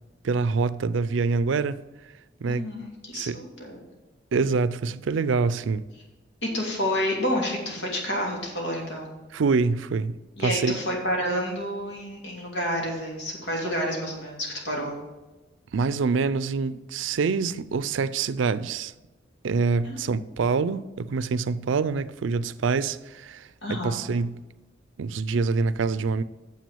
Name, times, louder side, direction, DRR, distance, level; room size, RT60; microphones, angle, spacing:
voice 1, 0.2-1.8 2.4-2.7 3.1-3.4 4.3-5.8 9.3-10.8 15.7-18.9 19.4-24.4 25.0-26.2, right 4 dB, 90° right, 0.4 m, -25 dB
voice 2, 2.5-3.8 6.4-9.2 10.4-15.0 19.8-20.0 23.6-24.1, equal, 85° left, 2.7 m, -29 dB
7.3 x 6.2 x 6.9 m
head